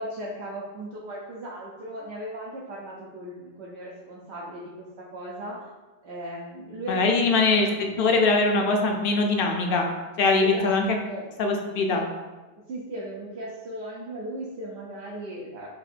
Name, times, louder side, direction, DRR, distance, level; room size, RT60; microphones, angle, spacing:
voice 1, 0.0-4.8 5.1-5.7 6.0-8.1 10.4-10.7 11.0-11.3 11.9-12.1 12.7-15.7, right 1 dB, 75° right, -6 dB, 0.9 m, -37 dB
voice 2, 6.9-9.9 10.2-10.9 11.4-12.0, left 3 dB, 60° left, 2 dB, 0.7 m, -22 dB
4.9 x 2.5 x 2.5 m, 1.2 s
omnidirectional pair, 1.2 m